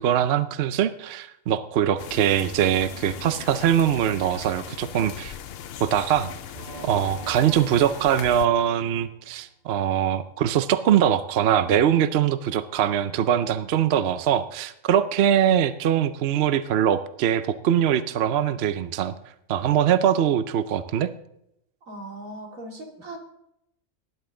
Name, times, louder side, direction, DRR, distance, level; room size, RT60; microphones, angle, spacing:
voice 1, 0.0-5.3 5.8-6.3 6.8-19.1 19.5-21.1, right 9 dB, 60° right, 12 dB, 0.8 m, -22 dB
sound 1, 2.0-8.5, left 9 dB, 60° left, 0.7 m, -39 dB
Singing / Musical instrument, 6.5-9.4, right 2 dB, 30° right, 4.7 m, -43 dB
voice 2, 21.9-23.2, right 1 dB, 85° right, 0 dB, 3.0 m, -38 dB
18.5 x 10.5 x 3.8 m, 0.80 s
omnidirectional pair, 1.4 m